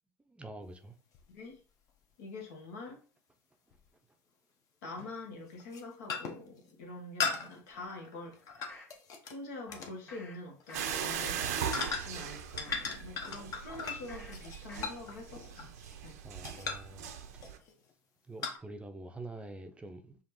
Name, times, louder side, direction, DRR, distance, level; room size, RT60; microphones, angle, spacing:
voice 1, 0.3-0.9 3.7-3.8 16.2-17.1 18.3-20.2, right 2 dB, 15° right, 0.5 m, -46 dB
sound 1, 1.1-1.2 3.7-3.8 5.0-5.2 5.6-5.8 6.1-6.5 7.2-9.4 9.7-10.0 10.6-10.8 11.7-12.3 12.6-16.1 16.4-16.9 17.4-17.7 18.4-18.6, left 5 dB, 45° left, 0.9 m, -38 dB
voice 2, 1.3-1.6 2.2-3.0 4.8-8.8 9.2-15.7 16.0-16.2, left 2 dB, 75° left, 1.3 m, -46 dB
sound 2, 7.7-9.0 9.7-10.3 10.7-11.2 11.6-13.0 13.7-14.3 14.7-15.2 15.6-15.7, left 2 dB, 30° left, 1.6 m, -54 dB
sound 3, 10.7-17.6, right 8 dB, 80° right, 0.5 m, -39 dB
5.0 x 2.5 x 3.0 m
hypercardioid pair, 90°, 8 cm